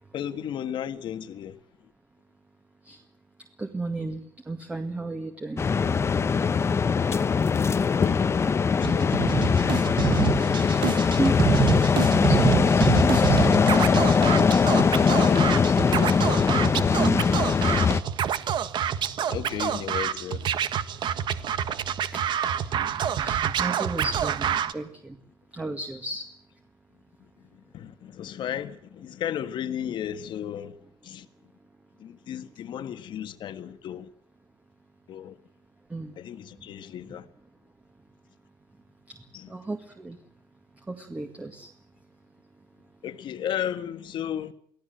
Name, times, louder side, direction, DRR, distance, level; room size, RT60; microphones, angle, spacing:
voice 1, 0.1-1.6 7.1-9.4 15.1-15.7 19.3-20.5 27.7-30.8 31.0-31.2 32.0-34.1 35.1-35.4 36.2-37.2 39.3-39.5 43.0-44.5, left 10 dB, 65° left, 1.6 m, -34 dB
voice 2, 3.6-5.7 10.5-10.9 11.2-11.5 12.1-13.6 15.6-16.2 17.0-17.2 22.1-25.2 25.5-26.3 35.9-36.2 36.6-36.7 39.1-39.2 39.5-40.2 40.9-41.7, right 2 dB, 15° right, 2.0 m, -34 dB
sound 1, 5.6-18.0, left 5 dB, 30° left, 1.0 m, -21 dB
Scratching (performance technique), 8.8-24.7, right 8 dB, 60° right, 1.4 m, -27 dB
24.0 x 16.5 x 7.8 m
cardioid pair, 135°, 9 cm